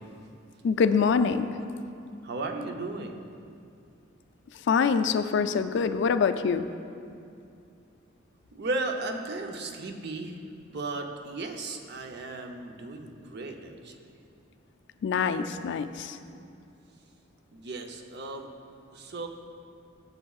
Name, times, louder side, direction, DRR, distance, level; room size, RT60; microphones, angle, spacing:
voice 1, 0.6-1.6 4.7-6.7 15.0-16.2, left 5 dB, 60° left, 11 dB, 0.3 m, -25 dB
voice 2, 2.2-3.1 8.5-14.0 17.5-18.5 18.9-19.3, right 2 dB, 60° right, 4 dB, 0.6 m, -35 dB
12.0 x 7.0 x 2.4 m, 2.4 s
head